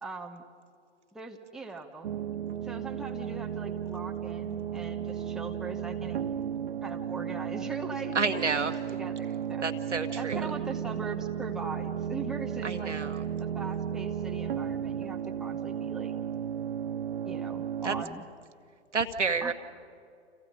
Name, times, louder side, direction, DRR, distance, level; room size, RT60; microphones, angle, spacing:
voice 1, 0.0-0.4 1.1-2.1 2.6-6.2 6.8-9.7 10.2-13.0 13.4-16.1 17.2-18.3 19.4-19.5, right 3 dB, ahead, 2 dB, 1.1 m, -41 dB
sound 1, 2.0-18.0, right 8 dB, 50° right, 0.8 m, -34 dB
voice 2, 8.2-8.8 9.6-10.4 12.6-13.2 17.8-17.9 18.9-19.5, right 4 dB, 75° right, 7 dB, 1.8 m, -29 dB
29.5 x 29.0 x 5.1 m, 2.3 s
figure-of-eight pair, 120°, 36 cm